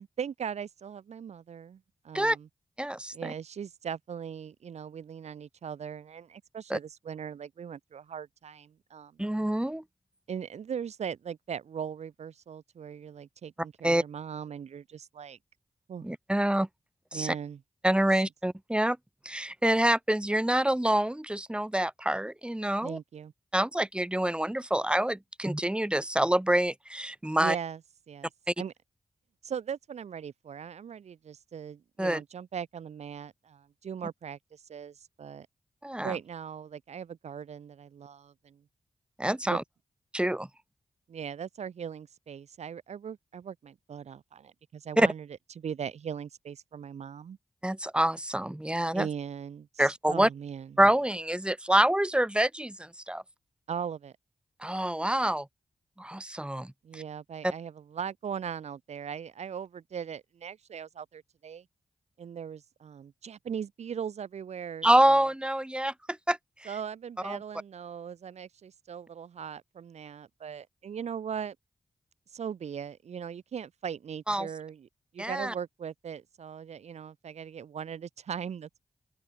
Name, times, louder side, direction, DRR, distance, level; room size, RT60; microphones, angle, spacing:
voice 1, 0.0-2.5 3.1-9.2 10.3-15.4 15.9-16.1 17.1-17.6 22.8-23.3 27.4-27.8 28.1-28.3 28.6-28.7 29.4-35.5 36.0-38.6 39.4-39.6 41.1-45.3 45.6-47.4 48.9-50.7 53.7-54.1 56.8-61.6 62.2-65.3 66.6-71.6 72.3-74.9 75.1-78.8, right 7 dB, 85° right, 6.2 m, -39 dB
voice 2, 2.8-3.3 6.7-6.8 9.2-9.8 13.8-14.0 16.0-16.7 17.1-17.3 17.8-19.0 19.2-23.0 23.5-27.6 32.0-32.2 35.8-36.2 39.2-39.6 40.1-40.5 45.0-45.1 47.6-49.1 49.8-50.3 50.8-53.2 54.6-55.5 56.0-57.0 57.4-57.5 64.8-66.7 67.2-67.4 74.3-74.5 75.2-75.5, right 1 dB, 10° right, 1.0 m, -26 dB
open air
cardioid pair, 55°, 11 cm